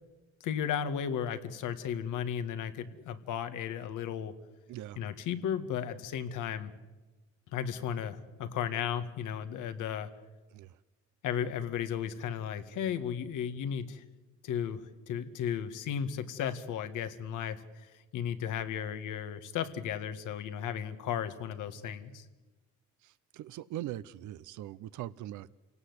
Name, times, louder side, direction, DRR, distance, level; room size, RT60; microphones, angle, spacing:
voice 1, 0.4-4.3 5.0-6.7 7.5-10.1 11.2-14.0 14.4-14.8 15.1-22.3, left 8 dB, 90° left, 10 dB, 1.8 m, -35 dB
voice 2, 23.3-25.5, right 13 dB, 80° right, 16 dB, 0.7 m, -41 dB
28.5 x 18.0 x 8.1 m, 1.2 s
cardioid pair, 90°, 30 cm